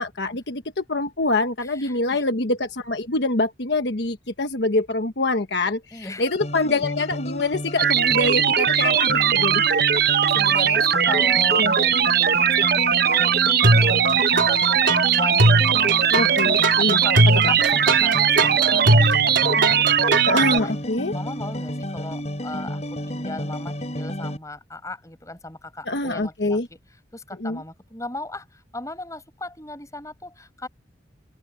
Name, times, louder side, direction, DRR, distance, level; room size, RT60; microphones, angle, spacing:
voice 1, 0.0-9.6 10.1-10.2 11.5-11.7 16.1-17.0 17.4-17.5 20.2-21.1 25.9-26.7 27.4-27.6, left 2 dB, 65° left, 1.2 m, -25 dB
voice 2, 1.6-2.2 5.9-6.2 10.3-20.1 20.6-20.7 21.1-26.6 27.1-30.7, left 2 dB, 15° left, 6.1 m, -37 dB
sound 1, 6.3-24.4, equal, 35° left, 6.2 m, -31 dB
sound 2, 7.8-20.6, right 8 dB, 55° right, 0.8 m, -19 dB
sound 3, 13.6-14.5 14.9-20.5, right 1 dB, 85° right, 3.2 m, -19 dB
open air
head